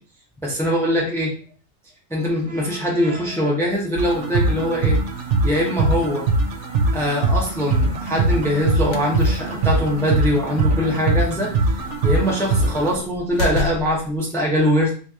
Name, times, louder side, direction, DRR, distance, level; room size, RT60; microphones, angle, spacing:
voice 1, 0.4-1.3 2.1-5.0 5.4-6.3 6.9-11.6 12.0-14.9, equal, 5° left, -3 dB, 0.7 m, -22 dB
sound 1, 4.0-13.0, right 2 dB, 90° right, 0.9 m, -22 dB
sound 2, 8.8-14.2, left 3 dB, 85° left, 0.9 m, -32 dB
2.9 x 2.5 x 3.6 m, 0.40 s
omnidirectional pair, 1.2 m